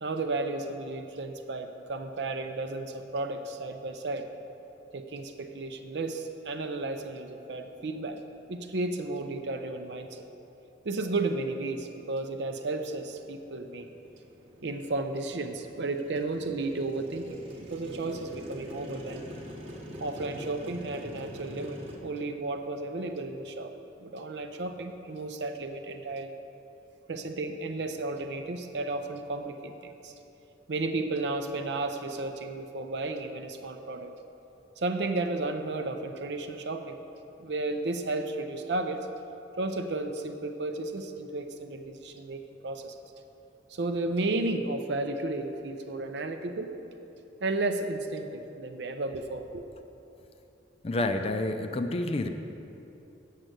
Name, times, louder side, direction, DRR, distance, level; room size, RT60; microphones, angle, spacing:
voice 1, 0.0-4.3 4.9-8.2 8.5-10.2 10.8-13.9 14.6-17.4 17.7-19.3 20.0-23.7 24.0-26.3 27.1-30.1 30.7-34.1 34.8-37.0 37.4-39.1 39.6-42.9 43.7-46.8 47.4-49.6, right 2 dB, 65° right, 6 dB, 0.5 m, -33 dB
Motorcycle, 12.6-22.0, equal, 30° right, 1.0 m, -45 dB
voice 2, 50.8-52.3, left 2 dB, 30° left, 7 dB, 0.5 m, -29 dB
7.4 x 6.4 x 8.0 m, 3.0 s
head